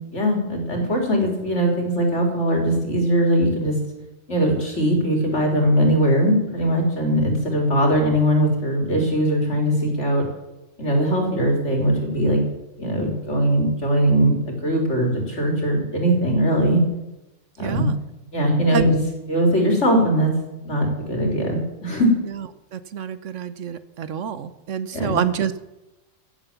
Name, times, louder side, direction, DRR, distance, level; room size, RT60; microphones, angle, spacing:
voice 1, 0.1-3.8 4.3-10.2 10.8-12.4 12.8-16.8 17.6-17.9 18.3-19.0 19.3-20.3 20.6-22.1 24.9-25.2, equal, 65° left, 2 dB, 3.9 m, -20 dB
voice 2, 17.6-18.0 18.7-18.9 22.7-25.6, right 8 dB, 70° right, 14 dB, 1.2 m, -27 dB
15.5 x 9.2 x 7.2 m, 0.97 s
omnidirectional pair, 1.3 m